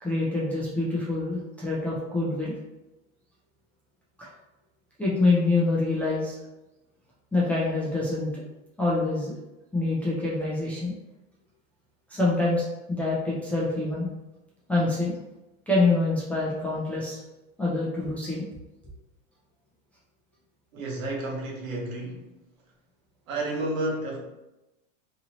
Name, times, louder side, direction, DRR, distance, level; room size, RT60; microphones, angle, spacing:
voice 1, 0.0-2.5 4.2-4.3 5.0-6.4 7.3-8.4 8.8-9.3 9.7-10.9 12.1-14.1 14.7-15.2 15.7-17.2 17.6-18.5, left 2 dB, 5° left, -7 dB, 0.3 m, -26 dB
voice 2, 20.7-22.3 23.3-24.2, right 2 dB, 90° right, -2 dB, 1.2 m, -31 dB
2.8 x 2.7 x 2.9 m, 0.98 s
supercardioid pair, 130°, 40 cm